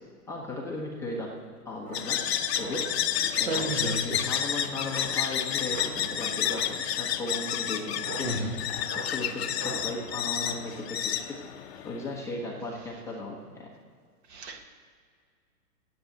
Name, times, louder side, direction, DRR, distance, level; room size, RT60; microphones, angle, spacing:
voice 1, 0.3-1.3 1.6-2.2 2.6-2.8 3.4-11.2 11.5-13.7, left 2 dB, 5° left, -4 dB, 0.8 m, -37 dB
sound 1, 1.7-10.5, right 2 dB, 20° right, 2.9 m, -43 dB
sound 2, 1.9-12.1, left 9 dB, 45° left, 0.7 m, -30 dB
voice 2, 3.5-4.1 8.2-8.5 14.3-14.7, right 1 dB, 45° right, 4 dB, 1.7 m, -32 dB
10.5 x 8.4 x 7.7 m, 2.1 s
hypercardioid pair, 145°, 46 cm